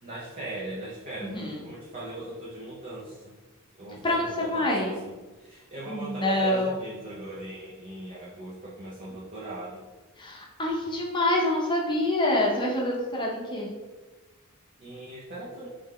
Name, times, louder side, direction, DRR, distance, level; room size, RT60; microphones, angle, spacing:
voice 1, 0.0-3.4 3.8-9.9 14.8-15.7, right 1 dB, 35° right, -6 dB, 0.6 m, -39 dB
voice 2, 1.2-1.6 4.0-4.9 5.9-6.8 10.2-13.7, left 1 dB, 20° left, -2 dB, 0.8 m, -26 dB
3.4 x 3.3 x 3.7 m, 1.2 s
head